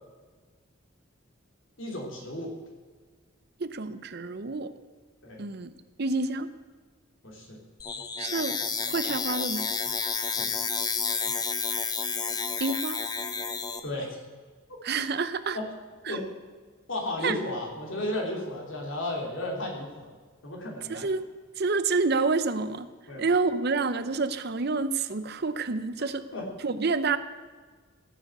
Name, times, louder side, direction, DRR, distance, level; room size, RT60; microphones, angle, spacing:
voice 1, 1.8-2.5 5.2-5.4 7.2-7.6 10.1-10.5 13.8-14.1 15.5-15.7 16.1-16.2 16.9-20.1 20.4-21.1 23.1-23.3 26.0-26.5, left 1 dB, 70° left, 0 dB, 3.3 m, -34 dB
voice 2, 3.6-4.7 5.4-5.7 6.0-6.5 8.2-8.6 8.9-9.7 12.6-13.0 14.8-15.6 16.1-16.2 17.2-17.4 20.9-21.3 21.6-22.9 23.2-26.3 26.6-27.2, right 4 dB, 55° right, 12 dB, 0.7 m, -28 dB
sound 1, 7.8-13.8, left 5 dB, 20° left, 0.8 m, -30 dB
16.0 x 7.2 x 8.0 m, 1.5 s
head